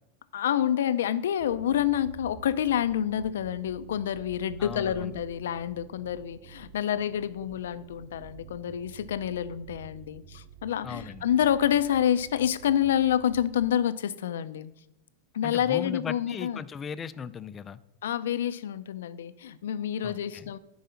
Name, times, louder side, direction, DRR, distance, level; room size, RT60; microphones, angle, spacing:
voice 1, 0.3-14.7 15.3-16.7 18.0-20.6, left 10 dB, 90° left, 14 dB, 0.5 m, -28 dB
sound 1, 1.4-13.7, right 7 dB, 40° right, 0.7 m, -50 dB
voice 2, 4.6-5.1 10.8-11.2 15.4-17.8 20.0-20.5, left 7 dB, 20° left, 15 dB, 0.4 m, -38 dB
10.5 x 4.8 x 5.6 m, 0.85 s
supercardioid pair, 145°, 0 cm